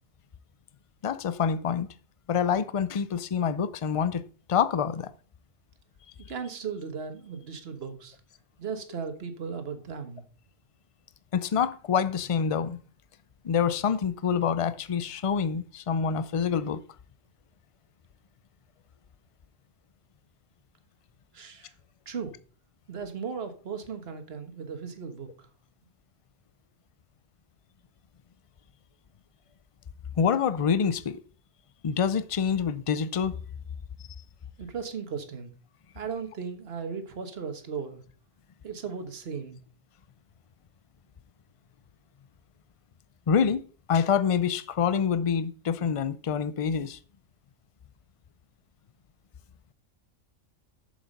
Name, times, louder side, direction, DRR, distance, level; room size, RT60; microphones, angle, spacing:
voice 1, 1.0-1.9 2.3-5.1 11.3-12.8 13.4-16.8 30.2-31.2 31.8-33.4 43.3-47.0, left 7 dB, 55° left, 0.3 m, -26 dB
voice 2, 6.3-8.2 8.6-10.2 21.3-21.7 22.0-22.4 22.9-25.5 34.6-35.5 35.9-38.0 38.6-39.6, right 6 dB, 55° right, 1.6 m, -36 dB
7.3 x 7.1 x 5.3 m
omnidirectional pair, 1.3 m